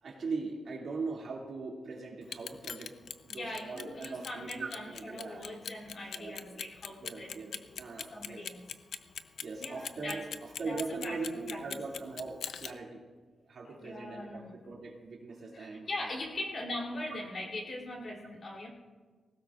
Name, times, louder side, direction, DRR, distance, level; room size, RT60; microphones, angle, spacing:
voice 1, 0.0-2.9 3.2-5.5 6.1-6.6 7.0-8.4 9.4-13.0 13.5-15.9, right 4 dB, 55° right, -1 dB, 2.5 m, -40 dB
Clock, 2.2-12.7, left 7 dB, 70° left, 0.6 m, -41 dB
voice 2, 3.3-8.7 9.6-10.3 10.6-11.6 13.6-14.5 15.5-18.7, left 1 dB, 45° left, 0 dB, 3.2 m, -41 dB
20.0 x 17.5 x 2.5 m, 1.4 s
wide cardioid pair, 170°, 0 cm